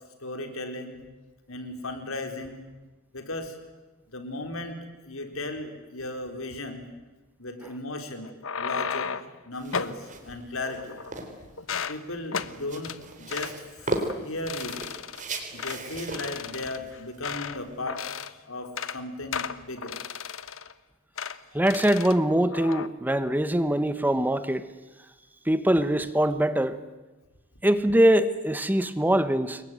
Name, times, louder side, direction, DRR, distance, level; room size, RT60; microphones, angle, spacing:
voice 1, 0.2-1.0 1.5-2.7 3.1-3.5 4.1-6.9 7.4-9.1 9.5-11.0 11.9-14.8 15.5-18.0 18.5-20.0, left 2 dB, 90° left, 6 dB, 4.2 m, -36 dB
sound 1, 8.2-9.4 9.7-10.0 10.6-11.3 11.6-12.0 12.3-12.5 12.8-13.0 13.3-13.5 14.0-14.2 14.5-15.2 15.6-15.8 16.1-17.6 17.9-18.4 18.6-19.0 19.3-20.7 21.2-21.4 21.7-22.2 22.5-22.9, left 6 dB, 70° left, 1.2 m, -34 dB
sound 2, 9.5-18.1, right 2 dB, 40° right, 4.0 m, -37 dB
voice 2, 21.5-24.7 25.4-26.8 27.6-29.6, right 1 dB, 10° right, 12 dB, 1.0 m, -23 dB
27.5 x 22.5 x 9.4 m, 1.1 s
head